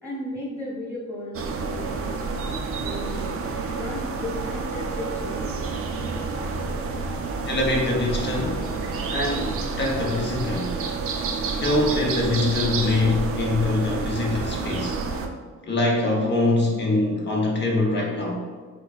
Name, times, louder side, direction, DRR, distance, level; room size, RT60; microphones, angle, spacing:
voice 1, 0.0-3.3 3.7-5.6, left 1 dB, 5° left, -9 dB, 1.4 m, -35 dB
sound 1, 1.3-15.3, right 4 dB, 50° right, 0.4 m, -29 dB
voice 2, 7.5-8.8 9.1-10.9 11.6-15.0 15.7-18.5, left 2 dB, 35° left, -2 dB, 0.9 m, -24 dB
3.6 x 3.1 x 2.4 m, 1.5 s
cardioid pair, 90°, 30 cm